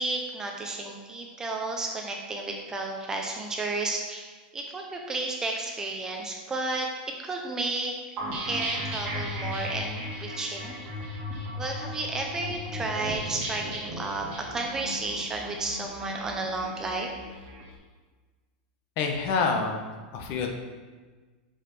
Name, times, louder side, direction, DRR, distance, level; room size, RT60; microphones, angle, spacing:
voice 1, 0.0-7.9 8.5-10.8 11.6-17.1, right 2 dB, 10° right, 1 dB, 0.6 m, -32 dB
sound 1, 8.2-17.6, equal, 30° right, 2.1 m, -36 dB
voice 2, 19.0-20.5, left 4 dB, 35° left, 3 dB, 1.0 m, -27 dB
6.2 x 5.5 x 6.1 m, 1.4 s
supercardioid pair, 170°, 5 cm